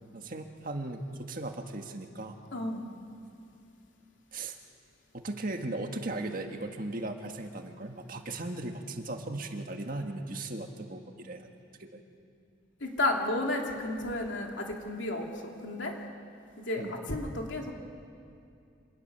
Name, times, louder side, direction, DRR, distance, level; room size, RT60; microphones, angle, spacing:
voice 1, 0.1-2.4 4.3-4.5 5.1-11.5 11.8-12.0 16.8-16.9, right 2 dB, 50° right, 4 dB, 1.7 m, -37 dB
voice 2, 2.5-2.8 12.8-15.9 16.6-17.7, left 2 dB, 75° left, 1 dB, 2.9 m, -32 dB
26.0 x 19.0 x 6.9 m, 2.5 s
head